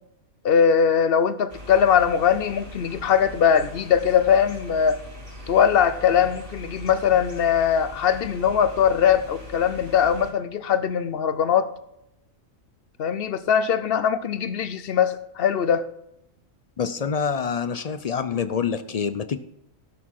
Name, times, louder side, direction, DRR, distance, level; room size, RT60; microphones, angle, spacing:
voice 1, 0.4-5.0 5.5-11.7 13.0-15.9, left 8 dB, 55° left, 13 dB, 0.8 m, -21 dB
sound 1, 1.5-10.3, left 1 dB, 50° right, 4.1 m, -41 dB
voice 2, 16.8-19.4, left 6 dB, 75° left, 11 dB, 0.3 m, -26 dB
16.5 x 6.2 x 4.7 m, 0.82 s
omnidirectional pair, 1.4 m